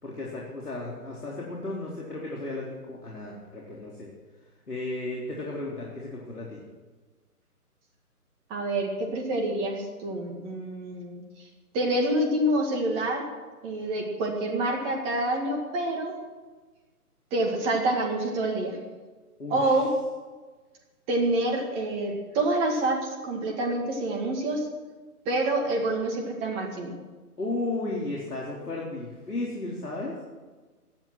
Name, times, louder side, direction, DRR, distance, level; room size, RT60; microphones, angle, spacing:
voice 1, 0.0-4.1 4.7-6.6 19.4-19.8 27.4-30.2, left 2 dB, 75° left, -4 dB, 4.1 m, -34 dB
voice 2, 8.5-11.2 11.7-13.3 13.6-16.1 17.3-18.8 19.5-19.9 21.1-24.7 25.3-26.9, right 1 dB, 10° right, 1 dB, 1.9 m, -27 dB
18.0 x 12.5 x 6.2 m, 1.3 s
figure-of-eight pair, 145°, 46 cm